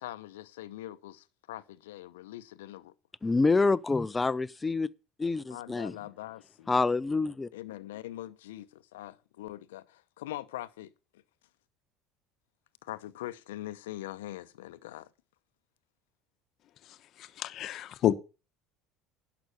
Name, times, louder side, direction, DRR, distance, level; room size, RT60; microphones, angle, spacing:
voice 1, 0.0-2.9 5.5-6.7 7.5-10.9 12.8-15.1, left 15 dB, 80° left, 0.8 m, -42 dB
voice 2, 3.2-4.9 5.2-5.9 6.7-7.5, left 3 dB, 20° left, 0.6 m, -27 dB
voice 3, 16.8-18.1, left 12 dB, 55° left, 1.0 m, -30 dB
11.5 x 6.1 x 8.4 m
hypercardioid pair, 70°, 0 cm